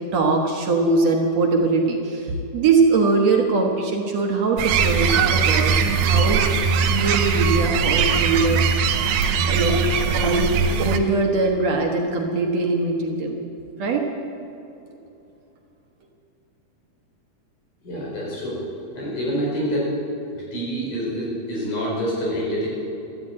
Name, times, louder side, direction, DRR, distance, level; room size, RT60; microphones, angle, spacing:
voice 1, 0.1-6.5 6.9-8.6 9.5-9.8 10.1-10.5 10.8-13.4 13.8-14.0, right 3 dB, 60° right, 1 dB, 2.2 m, -21 dB
sound 1, 4.6-11.0, right 6 dB, 85° right, 2.5 m, -20 dB
voice 2, 17.8-18.6 19.0-19.9 20.3-22.7, equal, 75° left, -5 dB, 6.6 m, -26 dB
14.0 x 11.0 x 8.6 m, 2.8 s
omnidirectional pair, 3.8 m